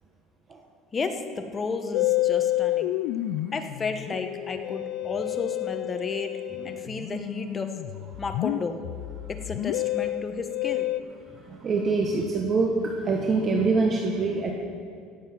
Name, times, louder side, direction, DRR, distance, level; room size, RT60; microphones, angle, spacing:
voice 1, 0.9-2.9 3.5-6.3 6.6-7.7 8.2-8.8 9.3-10.9, left 4 dB, 25° left, 6 dB, 1.1 m, -32 dB
Musical instrument, 1.9-11.0, left 16 dB, 70° left, 0.4 m, -29 dB
voice 2, 11.3-14.5, right 3 dB, 35° right, 1 dB, 1.1 m, -25 dB
17.0 x 7.3 x 5.9 m, 2.4 s
cardioid pair, 130°, 0 cm